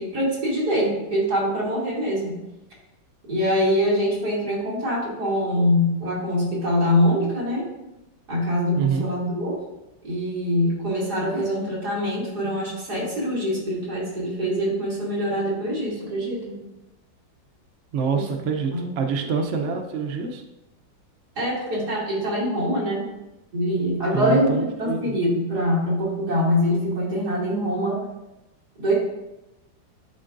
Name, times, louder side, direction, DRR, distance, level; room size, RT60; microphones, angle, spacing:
voice 1, 0.0-2.3 3.3-7.7 8.3-9.6 10.0-16.6 18.1-18.3 18.7-18.9 21.4-23.1 23.5-28.0 28.8-29.0, equal, 55° right, -8 dB, 3.2 m, -24 dB
voice 2, 8.8-9.1 17.9-20.4 24.1-25.1, right 6 dB, 70° right, 4 dB, 0.7 m, -26 dB
11.5 x 4.5 x 2.5 m, 0.98 s
omnidirectional pair, 2.1 m